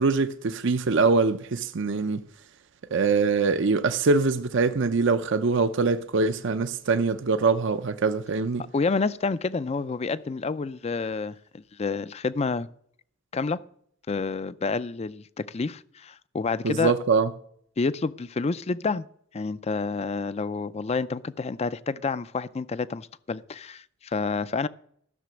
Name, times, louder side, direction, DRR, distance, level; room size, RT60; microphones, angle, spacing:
voice 1, 0.0-2.2 2.9-8.6 16.6-17.3, right 4 dB, 65° right, 0.6 m, -23 dB
voice 2, 8.7-12.7 13.3-13.6 14.1-16.9 17.8-19.1 19.3-24.7, left 4 dB, 30° left, 0.4 m, -29 dB
13.5 x 6.8 x 6.3 m
head